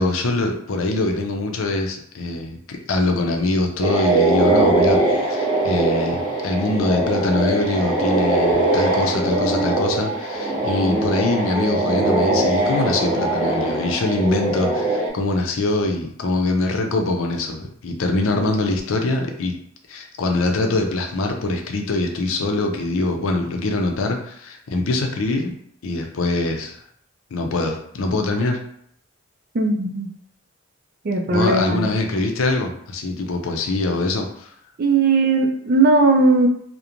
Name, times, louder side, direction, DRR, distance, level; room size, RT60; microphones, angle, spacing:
voice 1, 0.0-19.6 19.9-25.5 25.8-26.8 27.3-28.6 31.3-34.5, left 2 dB, 85° left, 3 dB, 0.5 m, -23 dB
sound 1, 3.8-15.1, right 2 dB, 20° right, 0.9 m, -21 dB
voice 2, 29.5-30.1 31.0-31.9 34.8-36.5, right 3 dB, 45° right, 3 dB, 0.3 m, -18 dB
2.9 x 2.1 x 2.5 m, 0.68 s
head